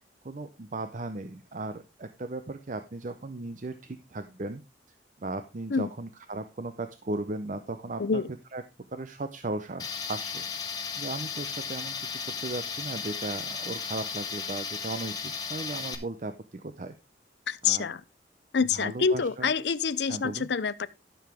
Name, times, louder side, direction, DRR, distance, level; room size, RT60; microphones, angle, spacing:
voice 1, 0.2-4.6 5.2-8.2 8.5-8.6 8.9-10.4 11.0-16.9 17.6-17.9 18.6-19.5 20.0-20.5, right 2 dB, 45° right, 0.7 m, -36 dB
Tools, 9.8-15.9, left 6 dB, 25° left, 1.5 m, -35 dB
voice 2, 17.5-18.0 18.5-20.9, left 5 dB, 65° left, 0.6 m, -27 dB
12.5 x 6.9 x 3.5 m
head